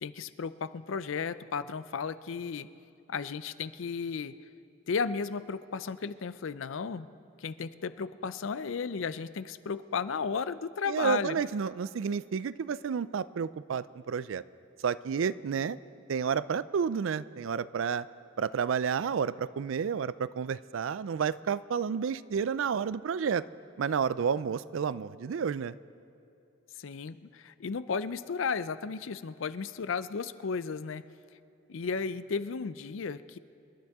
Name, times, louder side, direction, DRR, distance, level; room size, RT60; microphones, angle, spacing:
voice 1, 0.0-2.7 3.1-4.4 4.9-7.1 7.4-11.4 26.8-31.0 31.7-33.4, left 5 dB, 70° left, 15 dB, 0.5 m, -34 dB
voice 2, 10.9-14.4 14.8-15.8 16.1-18.1 18.4-23.4 23.8-25.7, right 6 dB, 70° right, 17 dB, 0.4 m, -30 dB
27.5 x 12.0 x 3.6 m, 2.6 s
head